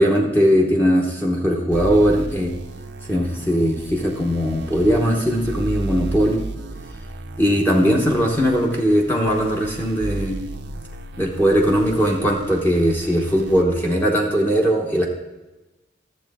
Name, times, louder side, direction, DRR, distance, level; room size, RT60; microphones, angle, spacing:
voice 1, 0.0-2.5 3.1-6.4 7.4-10.4 11.2-15.1, equal, 10° left, -1 dB, 0.9 m, -19 dB
sound 1, 1.7-13.6, right 2 dB, 60° right, 0.6 m, -34 dB
12.0 x 7.5 x 3.5 m, 1.1 s
head